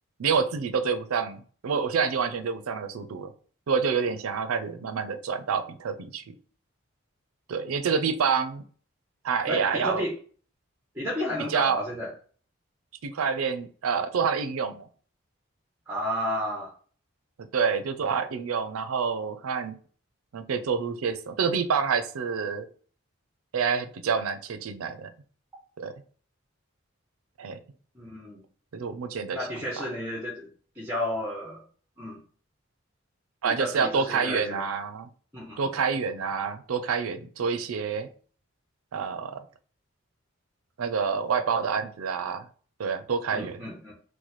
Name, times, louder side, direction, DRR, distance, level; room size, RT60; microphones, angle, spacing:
voice 1, 0.2-3.3 3.7-6.4 7.5-8.6 9.2-10.0 11.5-11.8 13.0-14.9 17.5-19.8 20.3-22.7 23.5-25.1 25.8-25.9 27.4-27.6 28.7-29.4 29.8-29.9 33.4-35.1 35.6-38.1 38.9-39.5 40.8-42.4 42.8-43.6, right 6 dB, 90° right, 10 dB, 0.4 m, -27 dB
voice 2, 9.5-10.1 10.9-12.1 15.9-16.7 27.9-28.4 29.3-31.6 32.0-32.2 33.4-34.6 35.3-35.7 43.3-43.9, left 1 dB, 10° right, -4 dB, 0.7 m, -32 dB
3.0 x 2.1 x 4.0 m, 0.43 s
head